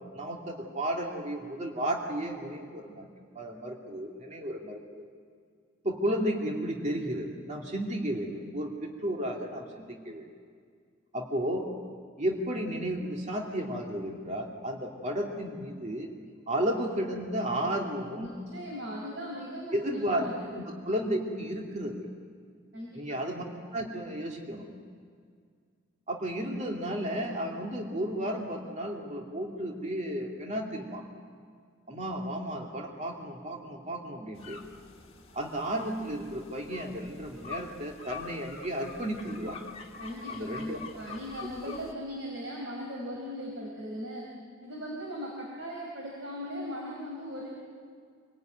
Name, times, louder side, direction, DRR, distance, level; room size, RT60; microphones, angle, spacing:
voice 1, 0.1-3.1 3.3-5.1 5.8-10.2 11.1-11.7 12.2-16.1 16.5-18.3 19.7-22.1 22.9-23.4 23.7-24.7 26.1-31.0 31.9-34.6 35.3-39.6 40.3-40.8, right 1 dB, 35° right, 0 dB, 2.6 m, -33 dB
voice 2, 18.1-20.5 22.7-23.2 40.0-44.3 44.6-47.5, equal, 65° right, -2 dB, 4.6 m, -38 dB
sound 1, 34.3-41.9, left 5 dB, 30° left, 1.9 m, -46 dB
27.0 x 18.5 x 9.3 m, 2.1 s
head